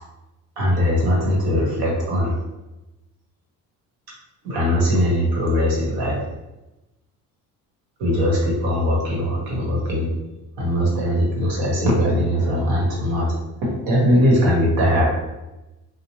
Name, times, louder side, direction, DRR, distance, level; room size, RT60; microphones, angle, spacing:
voice 1, 0.6-2.4 4.4-6.2 8.0-10.1 10.6-13.3 13.6-15.1, equal, 80° right, -3 dB, 1.2 m, -20 dB
3.0 x 2.2 x 2.8 m, 0.99 s
cardioid pair, 105°, 35 cm